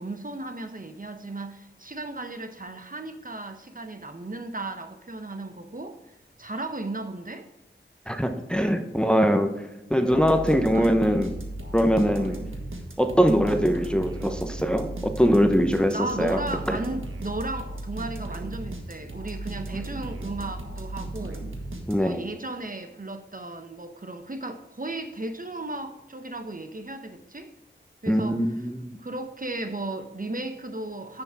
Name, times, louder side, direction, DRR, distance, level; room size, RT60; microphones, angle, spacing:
voice 1, 0.0-7.5 10.4-11.0 12.2-12.4 15.9-21.5 22.0-27.5 28.0-28.4 29.0-31.2, right 2 dB, 40° right, 7 dB, 0.9 m, -35 dB
voice 2, 8.1-9.5 9.9-11.3 11.7-12.4 13.0-16.4 16.7-16.8 21.9-22.2 28.1-29.0, equal, 5° left, 6 dB, 0.9 m, -22 dB
sound 1, 10.1-22.3, right 2 dB, 85° right, 1.5 m, -36 dB
9.6 x 7.0 x 3.6 m, 0.99 s
wide cardioid pair, 50°, 21 cm